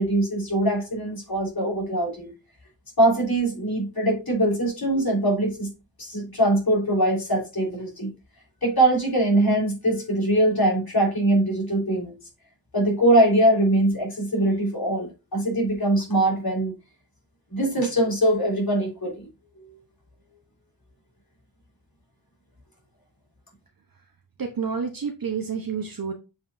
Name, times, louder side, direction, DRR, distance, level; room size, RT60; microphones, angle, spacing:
voice 1, 0.0-2.3 3.0-5.7 6.0-8.1 8.6-12.2 12.7-16.7 17.5-19.3 19.7-19.8, right 1 dB, 55° left, -3 dB, 3.8 m, -22 dB
voice 2, 24.4-26.1, right 6 dB, 50° right, 4 dB, 0.9 m, -29 dB
7.1 x 5.4 x 2.5 m, 0.29 s
wide cardioid pair, 75°, 44 cm